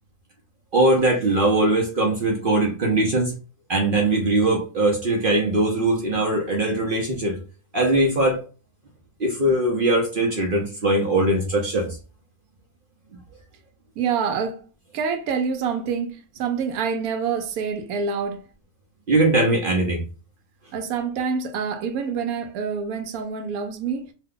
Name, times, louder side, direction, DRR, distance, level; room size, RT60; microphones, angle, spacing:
voice 1, 0.7-3.4 3.7-7.4 7.7-8.4 9.2-12.0 19.1-20.0, right 2 dB, 55° right, 0.6 m, -21 dB
voice 2, 14.0-14.6 14.9-18.5 20.7-24.1, right 6 dB, 80° right, 1.1 m, -26 dB
2.7 x 2.2 x 3.6 m
omnidirectional pair, 1.5 m